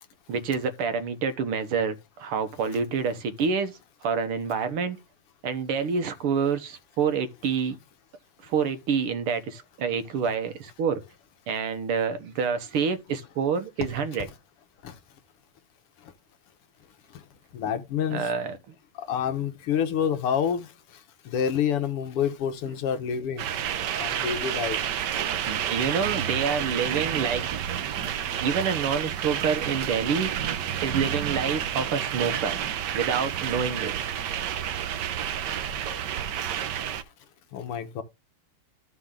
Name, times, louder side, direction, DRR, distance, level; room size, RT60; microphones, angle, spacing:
voice 1, 0.3-5.0 5.4-7.8 8.4-11.0 11.5-14.3 18.1-18.6 25.5-27.5 28.4-30.3 30.8-32.6 32.9-33.9, right 6 dB, 80° right, 2.1 m, -27 dB
voice 2, 17.5-18.3 19.1-20.7 21.3-23.5 24.0-24.8 37.5-38.0, left 8 dB, 90° left, 2.1 m, -27 dB
sound 1, 23.4-37.0, right 9 dB, 65° right, 1.2 m, -30 dB
13.0 x 5.3 x 3.7 m
omnidirectional pair, 2.4 m